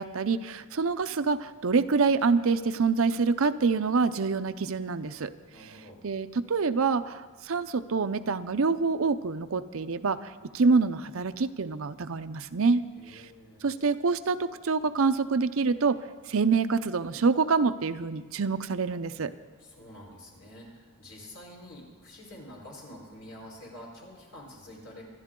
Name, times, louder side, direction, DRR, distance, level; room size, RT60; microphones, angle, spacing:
voice 1, 0.0-5.3 6.0-13.2 13.6-16.0 16.3-19.3, right 4 dB, 70° right, 11 dB, 0.6 m, -26 dB
voice 2, 5.5-6.0 13.0-13.9 19.6-25.0, left 1 dB, 75° left, -2 dB, 4.5 m, -47 dB
26.0 x 11.0 x 3.8 m, 1.4 s
head